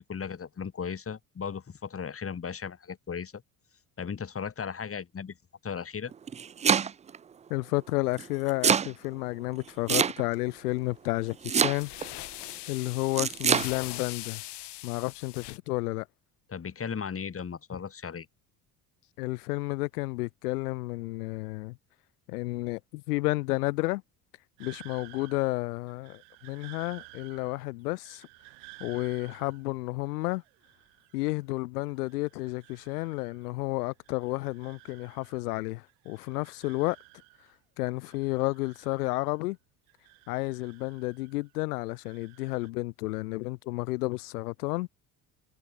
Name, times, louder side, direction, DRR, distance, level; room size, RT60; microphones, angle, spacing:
voice 1, 0.1-3.4 4.0-5.3 5.6-6.1 16.5-18.3, left 6 dB, 30° left, 2.2 m, -36 dB
Domestic sounds home sounds, 6.1-7.2 8.2-8.9 9.9-10.5 11.4-12.1 13.2-13.7, right 7 dB, 15° right, 0.3 m, -25 dB
voice 2, 7.5-11.9 12.7-14.4 14.8-16.1 19.2-21.8 22.3-24.0 24.6-28.3 28.8-30.4 31.1-37.0 37.8-39.6 40.3-44.9, left 22 dB, 80° left, 1.6 m, -31 dB
sound 1, 10.6-10.8 11.7-15.6, left 17 dB, 65° left, 4.6 m, -41 dB
sound 2, 24.6-31.6 31.9-33.6 33.9-35.6 35.9-37.6 37.9-39.5 39.9-41.5 41.9-42.7, right 40 dB or more, 75° right, 3.0 m, -54 dB
hypercardioid pair, 60°, 45 cm